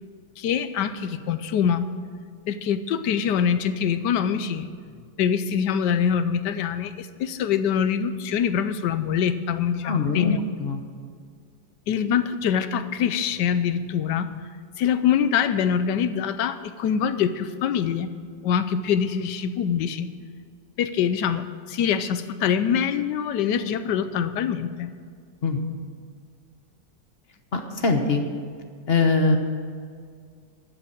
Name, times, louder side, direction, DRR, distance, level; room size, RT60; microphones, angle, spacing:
voice 1, 0.4-1.9 2.5-4.7 5.2-10.4 11.9-14.5 14.8-18.1 18.4-20.1 20.8-24.9, left 8 dB, 75° left, 12 dB, 1.3 m, -24 dB
voice 2, 9.8-10.8 25.4-25.6 27.5-28.2 28.9-29.4, left 3 dB, 40° left, 5 dB, 1.1 m, -22 dB
12.5 x 7.1 x 8.6 m, 2.1 s
omnidirectional pair, 1.9 m